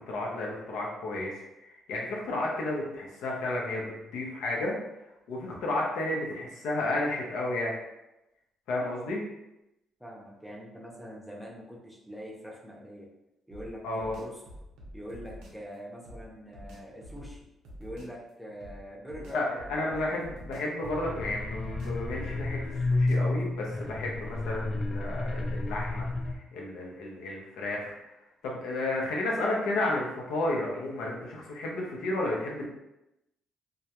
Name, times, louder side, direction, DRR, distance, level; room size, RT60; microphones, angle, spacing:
voice 1, 0.0-4.8 5.3-7.7 8.7-9.3 13.8-14.2 19.3-22.6 22.9-28.1 28.4-32.6, left 2 dB, 85° left, -2 dB, 0.6 m, -32 dB
voice 2, 10.0-13.1 13.5-14.4 14.9-17.5 17.8-20.2, equal, 5° right, -3 dB, 0.6 m, -44 dB
sound 1, 13.5-15.6 16.1-18.2 18.6-20.9 21.2-23.4, equal, 90° right, 0.5 m, -47 dB
sound 2, 20.8-26.4, left 2 dB, 40° left, 0.3 m, -31 dB
2.2 x 2.1 x 2.9 m, 0.93 s
cardioid pair, 90°, 0 cm